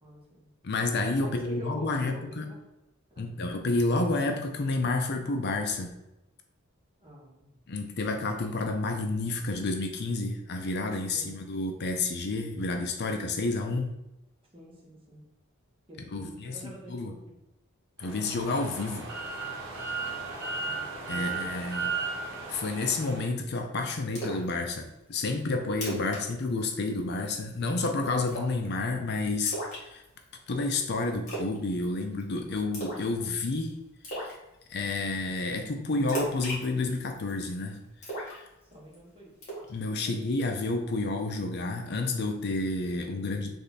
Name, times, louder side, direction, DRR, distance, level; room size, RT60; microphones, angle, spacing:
voice 1, 0.0-0.5 1.2-2.6 3.1-3.2 7.0-7.6 11.0-11.5 14.5-15.2 15.9-17.4 20.6-21.9 38.7-39.3 40.0-40.2, equal, 25° right, -4 dB, 1.3 m, -47 dB
voice 2, 0.6-2.4 3.2-5.9 7.7-13.9 16.1-17.1 18.0-19.1 21.1-21.9 22.5-29.5 29.8-30.0 30.5-33.8 34.1-34.4 34.7-37.8 38.2-38.5 39.7-43.6, left 3 dB, 50° left, 4 dB, 0.5 m, -30 dB
sound 1, 18.0-23.2, right 4 dB, 60° right, 1.0 m, -35 dB
Splash splatter, 24.2-24.5 24.9-25.0 25.4-25.5 25.7-26.2 26.5-26.7 27.0-27.4 28.3-28.6 29.5-30.3 31.3-31.6 31.8-32.2 32.7-33.1 33.4-33.5 34.0-34.3 36.1-37.4 38.0-38.9 39.4-39.7, right 1 dB, 35° left, 1.5 m, -35 dB
3.5 x 3.2 x 4.1 m, 0.92 s
head